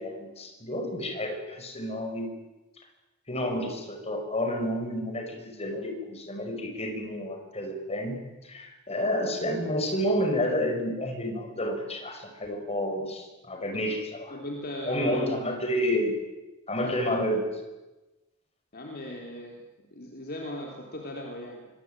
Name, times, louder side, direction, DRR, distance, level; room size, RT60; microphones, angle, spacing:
voice 1, 0.0-2.3 3.3-14.4 14.9-16.2 16.7-17.5, equal, 30° left, 5 dB, 5.9 m, -30 dB
voice 2, 14.3-15.2 18.7-19.6 19.9-21.7, left 1 dB, 45° left, 0 dB, 3.7 m, -38 dB
25.5 x 23.5 x 9.2 m, 1.1 s
head